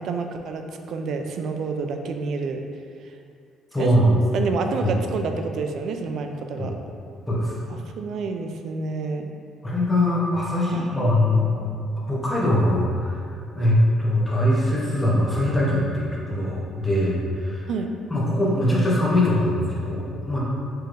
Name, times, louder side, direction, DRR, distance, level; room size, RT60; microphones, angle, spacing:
voice 1, 0.0-2.6 3.0-3.1 3.8-3.9 4.3-6.7 7.7-9.3 10.6-10.9 17.7-17.9, right 4 dB, 60° right, 5 dB, 0.3 m, -29 dB
voice 2, 3.7-4.1 4.8-4.9 7.3-7.6 9.6-11.6 12.1-13.2 13.5-17.7 18.1-20.4, left 1 dB, 10° left, -6 dB, 0.9 m, -22 dB
4.5 x 3.2 x 2.5 m, 2.3 s
cardioid pair, 115°, 0 cm